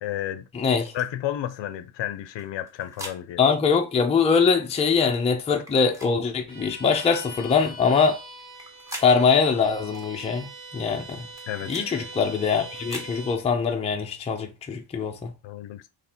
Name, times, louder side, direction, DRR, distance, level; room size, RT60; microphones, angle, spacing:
voice 1, 0.0-0.5 0.9-3.4 11.5-11.9 15.4-15.9, left 12 dB, 65° left, 0.6 m, -32 dB
voice 2, 0.5-0.9 3.4-8.2 9.0-11.3 11.7-15.3, left 5 dB, 15° left, 0.4 m, -23 dB
sound 1, 0.8-1.1 2.4-3.2 4.3-4.5 5.6-6.1 7.0-7.2 8.4-9.1 9.9-10.1 11.1-11.9 12.7-13.1, equal, 5° right, 0.8 m, -41 dB
Bowed string instrument, 6.5-13.5, right 2 dB, 85° right, 1.4 m, -42 dB
3.1 x 2.8 x 4.1 m
cardioid pair, 145°, 49 cm